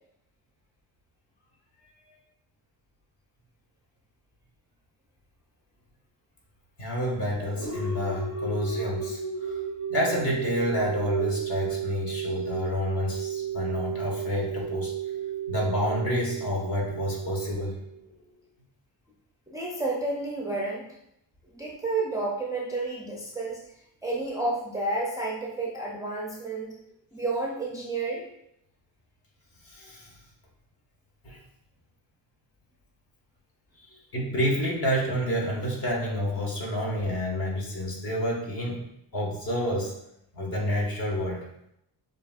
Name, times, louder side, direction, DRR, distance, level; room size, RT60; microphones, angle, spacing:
voice 1, 6.8-9.6 9.9-14.9 15.5-17.8 29.6-30.1 31.2-31.4 33.8-38.8 39.1-39.9 40.3-41.4, equal, 50° left, -2 dB, 1.5 m, -29 dB
sound 1, 7.5-18.2, right 7 dB, 25° left, 1.2 m, -33 dB
voice 2, 19.5-20.8 21.5-23.6 24.0-26.7 27.1-28.2, right 2 dB, 10° right, -4 dB, 0.4 m, -30 dB
6.6 x 2.7 x 2.4 m, 0.78 s
cardioid pair, 130°, 44 cm